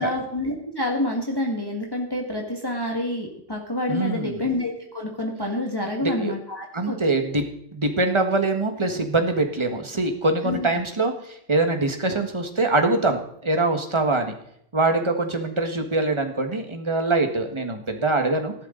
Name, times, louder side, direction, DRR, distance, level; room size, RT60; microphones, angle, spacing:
voice 1, 0.0-7.0 10.4-10.7, left 1 dB, 20° left, -1 dB, 1.9 m, -28 dB
voice 2, 3.9-4.4 6.0-6.3 6.7-7.4 7.7-14.3 14.7-18.5, right 2 dB, 25° right, 5 dB, 1.5 m, -23 dB
15.0 x 12.5 x 3.9 m, 0.71 s
omnidirectional pair, 1.3 m